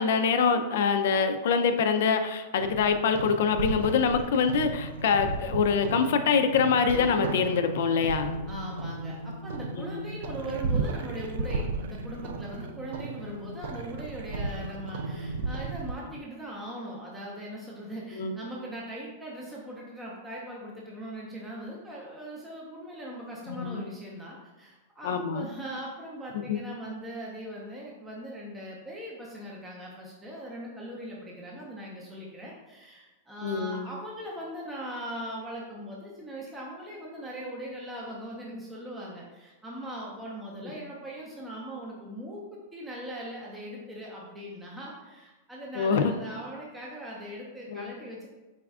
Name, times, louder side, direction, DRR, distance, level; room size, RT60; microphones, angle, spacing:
voice 1, 0.0-8.4 9.8-10.0 18.2-18.3 23.5-23.8 25.0-25.5 26.5-26.6 33.4-33.9 40.6-40.7 45.8-46.1 47.7-47.8, left 6 dB, 65° left, 7 dB, 0.3 m, -25 dB
sound 1, 2.6-15.9, right 3 dB, 70° right, 0.3 m, -34 dB
voice 2, 8.5-48.3, equal, 10° right, -4 dB, 0.5 m, -40 dB
4.1 x 2.3 x 3.4 m, 1.2 s
supercardioid pair, 165°, 0 cm